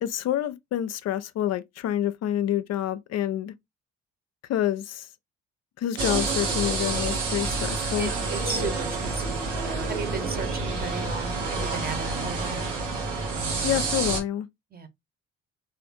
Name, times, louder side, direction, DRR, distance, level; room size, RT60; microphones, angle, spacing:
voice 1, 0.0-3.5 4.5-5.1 5.8-8.1 13.6-14.5, left 11 dB, 50° left, 0.5 m, -27 dB
sound 1, 6.0-14.2, right 3 dB, 85° right, 1.0 m, -28 dB
voice 2, 8.0-12.7 14.7-14.9, right 4 dB, 25° right, 1.0 m, -35 dB
3.4 x 2.5 x 2.5 m
hypercardioid pair, 45°, 35 cm